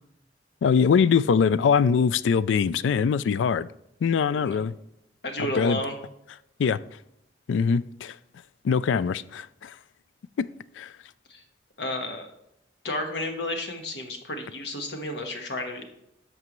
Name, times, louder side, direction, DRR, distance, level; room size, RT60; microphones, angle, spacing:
voice 1, 0.6-3.7 4.0-4.7 5.5-5.9 6.6-6.8 7.5-8.2 8.6-9.8 10.4-10.9, left 6 dB, 85° left, 0.3 m, -23 dB
voice 2, 5.2-6.0 11.3-11.4 11.8-12.3 12.8-15.8, left 1 dB, 70° left, 1.3 m, -32 dB
11.0 x 6.7 x 3.1 m
head